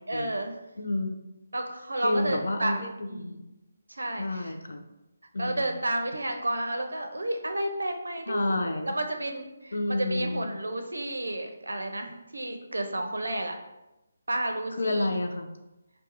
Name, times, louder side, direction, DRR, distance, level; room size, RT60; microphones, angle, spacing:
voice 1, 0.1-0.6 1.5-3.5 3.9-4.5 5.4-13.5 14.3-15.1, right 1 dB, 85° right, 5 dB, 0.5 m, -31 dB
voice 2, 0.8-1.2 2.0-3.4 4.2-4.9 5.3-5.7 8.3-8.9 9.7-10.5 14.8-15.5, left 2 dB, 75° left, 5 dB, 0.4 m, -30 dB
2.5 x 2.3 x 4.1 m, 0.96 s
figure-of-eight pair, 155°, 0 cm